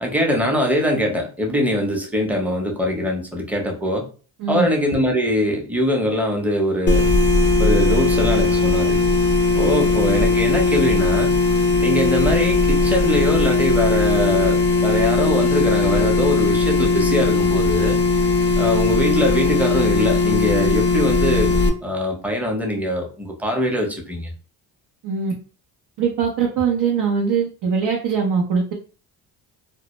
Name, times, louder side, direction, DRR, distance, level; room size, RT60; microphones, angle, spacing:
voice 1, 0.0-4.0 4.5-7.1 7.6-9.2 9.6-11.4 11.8-18.0 18.6-21.5 21.8-24.3, equal, 5° right, 0 dB, 0.7 m, -22 dB
sound 1, 6.9-21.7, left 3 dB, 25° left, 0.3 m, -18 dB
voice 2, 26.0-28.7, right 6 dB, 65° right, -1 dB, 0.7 m, -21 dB
2.1 x 2.0 x 3.0 m, 0.37 s
supercardioid pair, 75°, 45 cm